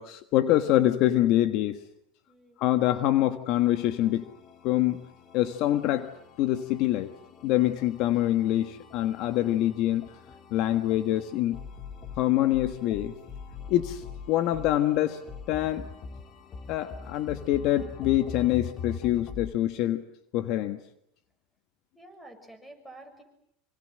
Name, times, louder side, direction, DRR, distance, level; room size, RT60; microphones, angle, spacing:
voice 1, 0.0-1.8 2.6-4.2 4.6-5.0 5.3-6.1 6.4-7.1 7.4-10.1 10.5-11.6 12.2-13.1 13.7-15.2 15.5-15.9 16.7-20.0 20.3-20.8, left 14 dB, 55° left, 9 dB, 1.5 m, -25 dB
voice 2, 2.3-2.6 21.9-23.2, right 2 dB, 5° left, 8 dB, 6.9 m, -49 dB
sound 1, 3.5-19.5, left 5 dB, 35° left, 3.0 m, -44 dB
26.5 x 24.5 x 7.9 m, 0.76 s
supercardioid pair, 130°, 0 cm